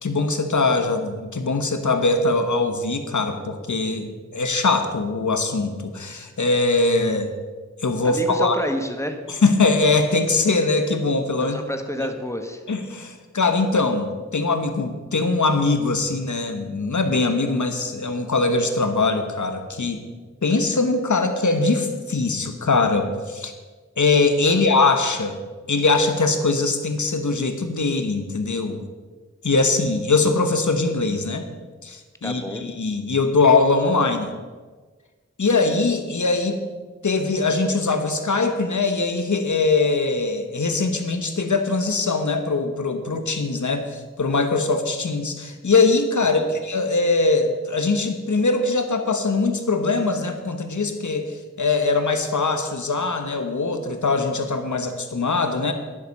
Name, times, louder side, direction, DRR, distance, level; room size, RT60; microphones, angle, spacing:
voice 1, 0.0-7.3 7.8-8.6 9.4-11.6 12.0-12.1 12.7-20.0 20.4-23.5 24.0-25.4 25.7-28.8 29.4-31.4 31.8-34.3 35.4-36.6 37.0-51.2 51.6-55.7, left 3 dB, 85° left, 7 dB, 1.2 m, -22 dB
voice 2, 8.0-9.2 11.4-12.6 24.5-24.6 32.2-32.6 46.4-46.6, left 1 dB, 10° left, 5 dB, 1.4 m, -29 dB
11.0 x 10.5 x 5.4 m, 1.4 s
wide cardioid pair, 45°, 29 cm